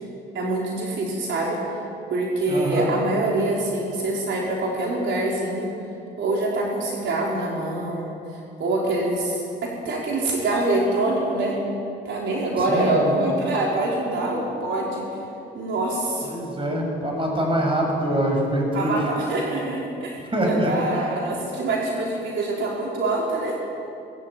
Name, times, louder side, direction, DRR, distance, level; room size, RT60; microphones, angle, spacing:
voice 1, 0.3-1.6 2.1-5.7 6.2-8.2 8.6-11.6 12.0-15.0 15.5-16.3 18.7-23.6, right 2 dB, 70° right, -3 dB, 4.1 m, -25 dB
voice 2, 2.5-2.9 12.7-13.2 16.3-19.0 20.3-21.0, right 1 dB, 25° right, 0 dB, 7.1 m, -24 dB
20.5 x 16.5 x 9.1 m, 2.6 s
cardioid pair, 90°, 20 cm